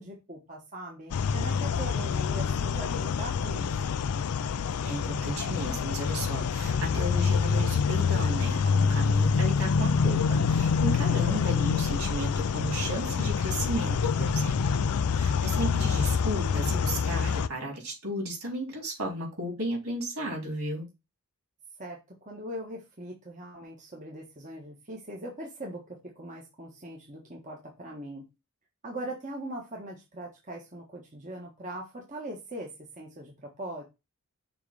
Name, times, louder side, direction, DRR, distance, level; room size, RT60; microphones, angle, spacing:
voice 1, 0.0-4.0 11.0-11.6 21.8-28.2 28.8-32.7 33.0-33.8, right 1 dB, 35° right, -1 dB, 1.4 m, -41 dB
sound 1, 1.1-17.5, left 5 dB, 90° left, 0.4 m, -26 dB
voice 2, 4.8-14.5 15.1-20.9, right 1 dB, 75° right, 0 dB, 4.1 m, -34 dB
6.8 x 3.2 x 4.8 m, 0.25 s
head